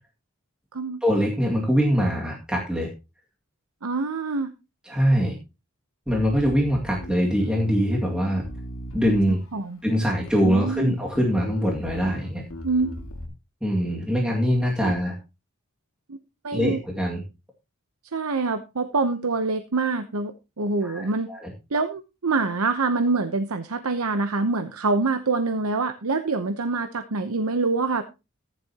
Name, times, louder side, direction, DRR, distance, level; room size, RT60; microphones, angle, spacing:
voice 1, 1.0-2.9 4.9-5.3 6.1-8.4 8.9-9.4 9.8-12.4 13.6-15.2 16.5-17.2 20.8-21.5, equal, 5° right, -3 dB, 2.1 m, -23 dB
voice 2, 3.8-4.5 9.5-9.8 10.4-11.0 12.6-12.9 14.8-14.9 16.1-16.2 16.4-16.8 18.1-21.3 21.7-28.0, right 3 dB, 80° right, 8 dB, 0.9 m, -25 dB
Bass guitar, 6.1-9.6 10.3-10.8 11.1-13.3, equal, 65° left, 2.2 m, -37 dB
14.5 x 10.0 x 2.9 m, 0.27 s
head